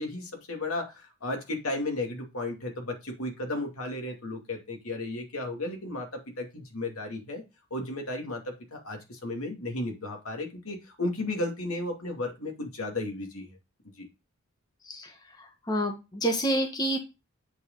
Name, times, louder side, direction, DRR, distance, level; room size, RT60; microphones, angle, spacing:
voice 1, 0.0-7.4 7.7-13.5 14.0-14.1, left 2 dB, 85° left, 2 dB, 2.4 m, -34 dB
voice 2, 14.8-17.0, right 1 dB, 20° left, 4 dB, 1.2 m, -29 dB
8.3 x 4.9 x 3.8 m, 0.26 s
head